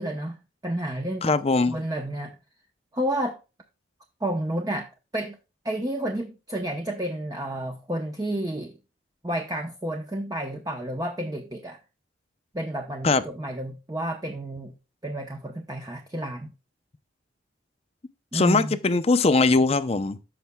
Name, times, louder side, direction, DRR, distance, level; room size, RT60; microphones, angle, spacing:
voice 1, 0.0-1.4 1.7-2.3 2.9-3.4 4.2-5.4 5.6-8.7 9.2-11.8 12.5-14.7 15.0-16.5 18.3-18.8, right 1 dB, 20° right, 0.7 m, -30 dB
voice 2, 1.2-1.8 13.0-13.2 18.3-20.2, left 3 dB, 30° left, 0.5 m, -21 dB
13.5 x 5.8 x 2.2 m
head